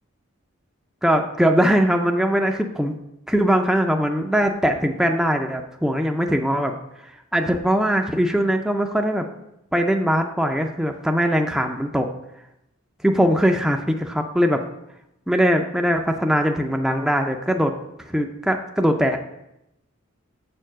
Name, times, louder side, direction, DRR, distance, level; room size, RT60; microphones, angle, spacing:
voice 1, 1.0-3.0 3.3-6.8 7.3-9.3 9.7-12.1 13.0-14.6 15.3-17.7 18.1-19.2, equal, ahead, 3 dB, 0.4 m, -21 dB
6.9 x 4.5 x 6.1 m, 0.86 s
head